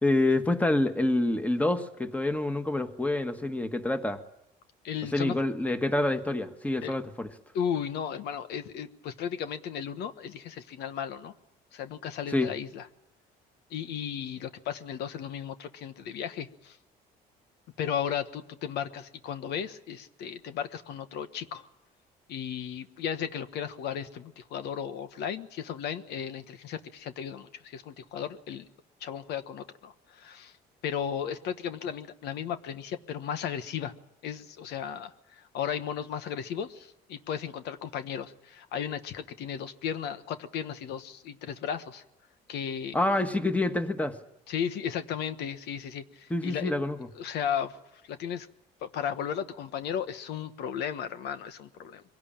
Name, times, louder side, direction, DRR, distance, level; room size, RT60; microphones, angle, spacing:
voice 1, 0.0-4.2 5.1-7.3 12.3-12.5 42.9-44.2 46.3-47.0, left 2 dB, 10° left, 8 dB, 1.6 m, -27 dB
voice 2, 4.8-5.4 6.8-6.9 7.5-11.3 11.7-12.9 13.7-16.8 17.8-21.7 22.3-28.7 29.0-30.5 30.8-33.9 34.2-42.0 42.5-43.0 44.5-46.7 47.2-47.8 48.1-48.5 48.8-52.0, left 8 dB, 80° left, 10 dB, 1.3 m, -35 dB
23.5 x 17.5 x 8.9 m, 0.89 s
cardioid pair, 110°, 17 cm